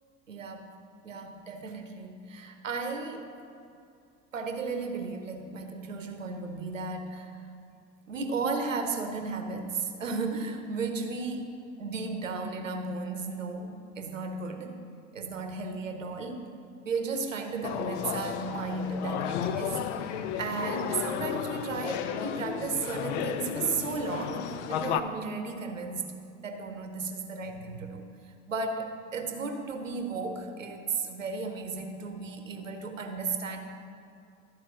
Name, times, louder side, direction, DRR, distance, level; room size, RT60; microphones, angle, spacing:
voice 1, 0.3-0.7 1.0-3.3 4.3-7.4 8.1-11.5 11.8-14.7 15.1-16.4 16.8-19.8 20.1-26.1 26.4-33.6, right 4 dB, 85° right, 6 dB, 0.9 m, -34 dB
sound 1, 17.6-25.0, left 9 dB, 60° left, 0.6 m, -33 dB
12.5 x 4.6 x 6.2 m, 2.5 s
figure-of-eight pair, 65°, 38 cm